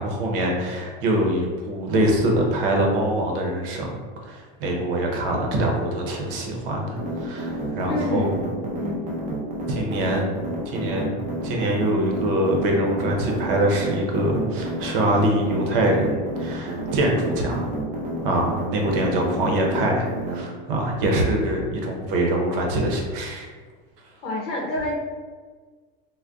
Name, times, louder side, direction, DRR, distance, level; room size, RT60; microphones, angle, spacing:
voice 1, 0.0-8.3 9.7-10.4 10.6-17.7 18.2-23.5, right 1 dB, 65° right, 1 dB, 0.7 m, -24 dB
sound 1, 6.9-20.4, right 2 dB, 25° right, 0.5 m, -30 dB
voice 2, 7.9-8.4 8.8-9.2 24.2-24.9, left 2 dB, 80° left, -3 dB, 0.7 m, -28 dB
2.5 x 2.2 x 3.4 m, 1.5 s
supercardioid pair, 160°, 29 cm